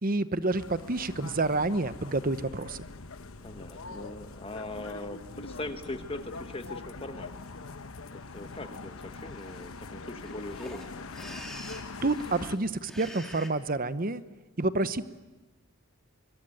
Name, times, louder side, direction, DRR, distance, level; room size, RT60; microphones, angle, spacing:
voice 1, 0.0-2.8 12.0-14.2 14.6-15.0, right 2 dB, 40° right, 13 dB, 1.0 m, -28 dB
sound 1, 0.5-12.6, left 3 dB, 75° left, 1.0 m, -43 dB
voice 2, 3.4-7.4 8.1-10.9, left 2 dB, 25° left, 8 dB, 1.4 m, -40 dB
sound 2, 6.7-6.8 7.2-7.7 8.3-8.6 8.8-8.9 9.1-13.5, left 1 dB, ahead, 3.1 m, -47 dB
24.5 x 22.5 x 9.2 m, 1.1 s
head